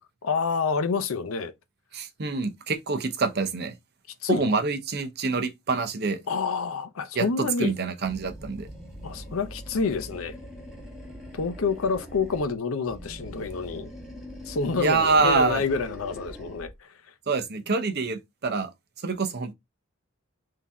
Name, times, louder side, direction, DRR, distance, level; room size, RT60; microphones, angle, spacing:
voice 1, 0.2-1.5 4.2-4.5 6.3-7.7 9.0-10.4 11.3-13.9 14.5-16.9, left 4 dB, 85° left, 0.6 m, -28 dB
voice 2, 1.9-3.7 4.3-6.2 7.2-8.7 14.8-15.6 17.3-18.7 19.0-19.5, right 4 dB, 50° right, 0.7 m, -26 dB
Animal, 8.0-12.6 12.9-16.8, equal, ahead, 1.3 m, -42 dB
3.9 x 2.8 x 3.5 m
head